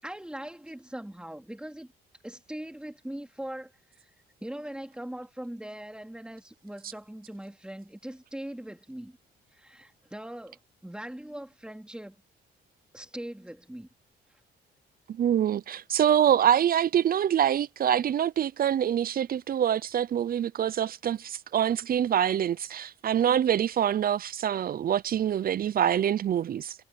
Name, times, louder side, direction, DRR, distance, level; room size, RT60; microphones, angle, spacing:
voice 1, 0.0-1.9 2.2-4.1 4.4-9.2 9.5-12.2 12.9-13.9, right 1 dB, 5° right, 3.0 m, -41 dB
voice 2, 15.1-26.7, right 10 dB, 50° right, 0.5 m, -25 dB
cardioid pair, 90°, 20 cm